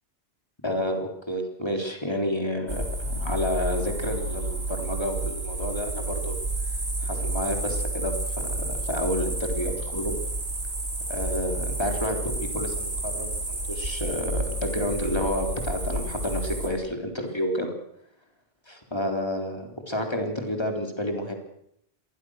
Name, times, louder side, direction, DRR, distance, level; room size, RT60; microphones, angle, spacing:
voice 1, 0.6-6.4 7.0-10.1 11.1-17.7 18.7-21.3, equal, 25° left, 3 dB, 3.9 m, -30 dB
sound 1, 2.7-16.7, right 2 dB, 65° right, 4.4 m, -30 dB
25.5 x 20.5 x 6.5 m, 0.77 s
omnidirectional pair, 1.1 m